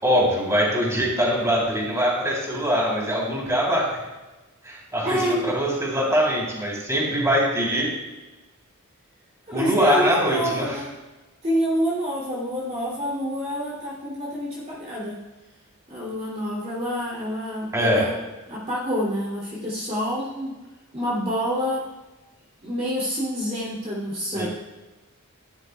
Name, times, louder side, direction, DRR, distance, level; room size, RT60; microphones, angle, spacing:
voice 1, 0.0-4.0 4.6-7.9 9.5-10.8 17.7-18.1 24.3-24.5, equal, 15° right, -3 dB, 3.5 m, -22 dB
voice 2, 5.0-5.5 9.5-10.9 11.4-15.2 15.9-18.2 18.5-20.6 20.9-21.8 22.6-24.5, equal, 30° right, -6 dB, 2.9 m, -27 dB
16.0 x 11.5 x 2.4 m, 1.1 s
head